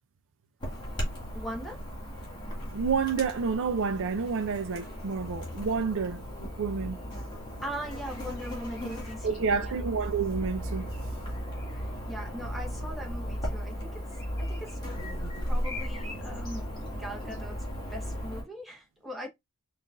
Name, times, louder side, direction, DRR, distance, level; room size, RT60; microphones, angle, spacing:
Chirp tweet / Buzz, 0.6-18.4, equal, 20° left, 2.1 m, -36 dB
voice 1, 0.9-1.9 7.6-9.8 11.7-14.1 14.4-14.8 15.4-16.6 16.9-19.3, equal, ahead, 1.0 m, -40 dB
voice 2, 2.7-6.2 6.6-7.0 9.2-10.9, right 5 dB, 60° right, 0.4 m, -29 dB
5.5 x 2.5 x 2.4 m
head